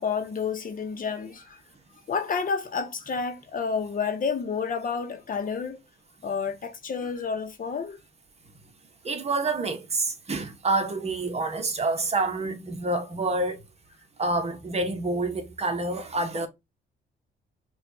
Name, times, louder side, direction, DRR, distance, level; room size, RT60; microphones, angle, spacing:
voice 1, 0.0-1.6 2.1-5.8 6.2-8.0 16.4-16.5, left 5 dB, 45° left, 0.9 m, -30 dB
voice 2, 9.0-13.6 14.2-16.5, right 2 dB, 30° right, 1.1 m, -27 dB
5.0 x 2.4 x 2.7 m
cardioid pair, 90°, 20 cm